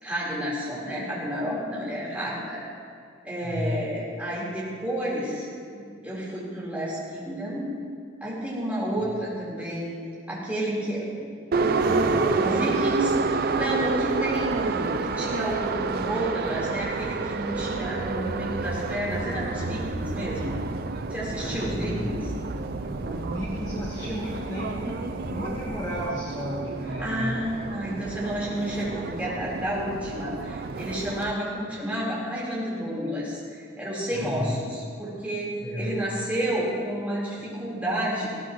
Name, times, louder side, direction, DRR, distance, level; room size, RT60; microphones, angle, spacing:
voice 1, 0.0-2.6 3.2-7.7 8.2-10.0 10.3-11.3 11.6-20.6 21.1-22.3 27.0-38.3, right 1 dB, 5° right, -7 dB, 3.9 m, -30 dB
voice 2, 3.4-3.7 12.0-12.9 21.4-22.1 22.9-27.4 34.1-34.8 35.6-35.9, equal, 20° left, -5 dB, 1.4 m, -33 dB
Subway metro underground, 11.5-31.3, right 4 dB, 50° right, 0.4 m, -30 dB
sound 1, 11.8-12.9 16.7-26.1, right 1 dB, 75° right, 1.1 m, -37 dB
19.0 x 16.0 x 3.1 m, 2.3 s
head